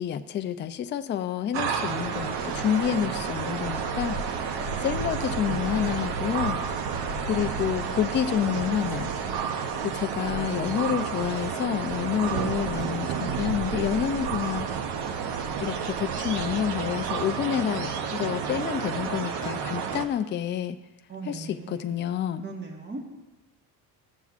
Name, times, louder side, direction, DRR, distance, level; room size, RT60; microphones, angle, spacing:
voice 1, 0.0-4.2 4.8-6.6 7.2-9.1 9.8-14.7 15.6-20.8 21.3-22.5, left 9 dB, 30° left, 8 dB, 0.4 m, -28 dB
sound 1, 1.5-20.0, right 6 dB, 85° right, 0.9 m, -31 dB
Thunder, 12.2-15.5, right 11 dB, 65° right, 0.5 m, -36 dB
voice 2, 21.1-22.1 22.4-23.2, right 3 dB, 25° right, 1 dB, 1.5 m, -40 dB
16.0 x 7.1 x 2.5 m, 1.1 s
cardioid pair, 135°, 40 cm